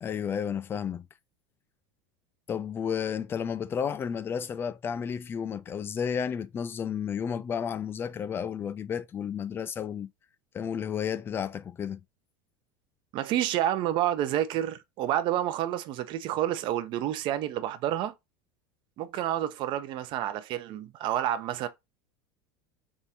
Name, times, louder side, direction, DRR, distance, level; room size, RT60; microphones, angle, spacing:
voice 1, 0.0-1.1 2.5-10.1 10.5-12.0, left 7 dB, 20° left, 0.3 m, -32 dB
voice 2, 13.1-18.1 19.0-21.7, right 12 dB, 45° right, 0.6 m, -29 dB
3.6 x 2.6 x 4.2 m
supercardioid pair, 140°, 11 cm